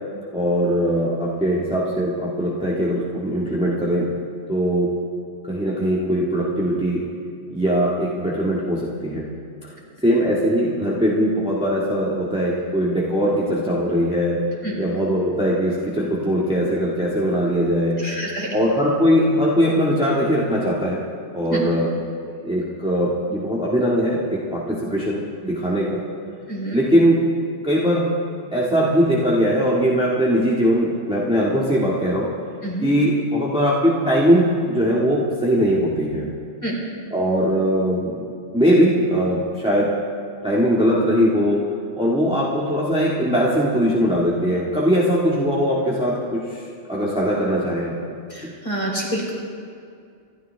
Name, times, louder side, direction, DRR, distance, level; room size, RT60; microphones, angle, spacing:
voice 1, 0.3-4.1 4.5-4.9 5.5-7.0 7.5-9.2 10.0-14.4 14.8-18.0 18.5-21.0 21.3-21.9 22.4-26.0 26.7-27.2 27.6-28.1 28.5-32.3 32.8-36.3 37.1-38.2 38.5-39.9 40.4-41.6 42.0-47.9, equal, 5° right, -6 dB, 1.8 m, -20 dB
voice 2, 18.0-18.5 21.5-21.6 26.5-26.8 32.6-32.9 36.6-36.8 48.3-49.3, right 1 dB, 25° left, -4 dB, 3.7 m, -27 dB
27.0 x 13.0 x 3.5 m, 2.3 s
omnidirectional pair, 1.2 m